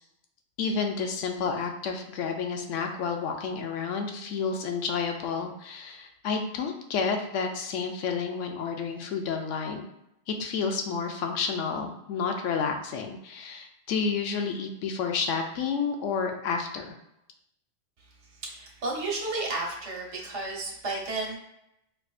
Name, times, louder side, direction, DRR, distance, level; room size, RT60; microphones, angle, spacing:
voice 1, 0.6-9.9 10.3-16.9, left 5 dB, 90° left, 4 dB, 0.9 m, -30 dB
voice 2, 18.4-21.3, right 2 dB, 75° right, -2 dB, 1.2 m, -32 dB
4.4 x 2.6 x 2.4 m, 0.83 s
omnidirectional pair, 1.2 m